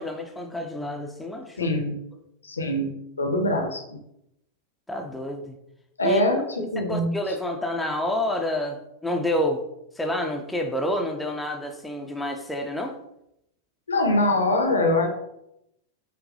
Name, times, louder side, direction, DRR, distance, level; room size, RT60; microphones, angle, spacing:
voice 1, 0.0-1.7 4.9-5.6 6.0-6.2 6.6-9.6 10.0-13.0, left 1 dB, 5° left, 3 dB, 0.5 m, -28 dB
voice 2, 1.6-2.0 2.4-4.0 6.0-7.4 13.9-15.1, left 1 dB, 75° left, 3 dB, 0.7 m, -24 dB
6.4 x 2.3 x 2.7 m, 0.82 s
figure-of-eight pair, 90°, 0 cm